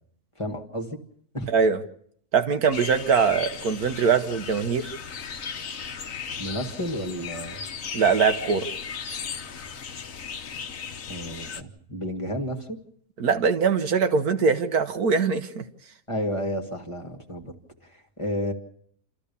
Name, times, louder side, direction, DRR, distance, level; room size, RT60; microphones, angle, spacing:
voice 1, 0.4-1.0 1.3-1.5 6.4-7.6 11.1-12.8 16.1-17.5 17.8-18.5, equal, 20° left, 3 dB, 1.7 m, -31 dB
voice 2, 1.5-1.8 2.3-4.9 7.9-8.7 13.2-15.6, right 5 dB, 75° right, 7 dB, 1.6 m, -22 dB
sound 1, 2.7-11.6, left 6 dB, 60° left, 1.4 m, -36 dB
27.5 x 14.0 x 6.9 m, 0.65 s
omnidirectional pair, 1.7 m